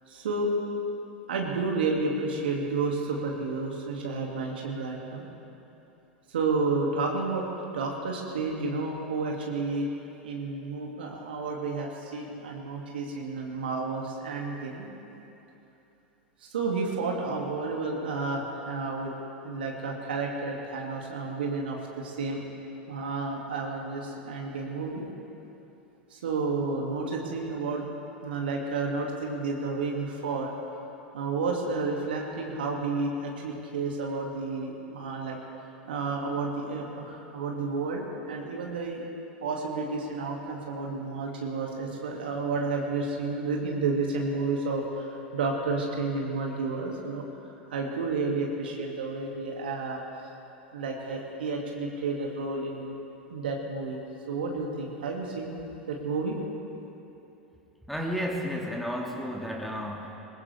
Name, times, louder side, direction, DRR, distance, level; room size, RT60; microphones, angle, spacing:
voice 1, 0.1-0.5 1.3-5.2 6.3-7.5 7.7-9.9 10.2-14.9 16.4-19.1 19.4-22.4 22.9-25.0 26.1-27.8 28.2-30.5 31.1-35.4 35.8-39.0 39.4-50.0 50.7-53.0 53.3-54.0 54.3-55.6 55.9-56.4, right 3 dB, 70° right, -1 dB, 2.2 m, -31 dB
voice 2, 57.9-60.2, equal, ahead, 0 dB, 1.7 m, -32 dB
20.5 x 20.5 x 3.4 m, 2.9 s
figure-of-eight pair, 90°, 6 cm